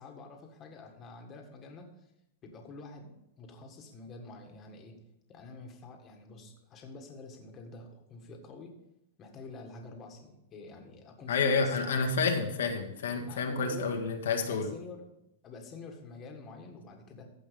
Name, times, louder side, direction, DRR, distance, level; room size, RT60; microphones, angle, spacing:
voice 1, 0.0-2.1 2.4-5.0 5.3-8.7 9.2-11.8 12.6-12.8 13.3-14.0 14.4-15.1 15.4-17.3, left 3 dB, 25° left, 2 dB, 1.7 m, -47 dB
voice 2, 11.3-14.7, left 4 dB, 90° left, 3 dB, 1.7 m, -29 dB
14.5 x 5.2 x 5.2 m, 0.85 s
supercardioid pair, 155°, 0 cm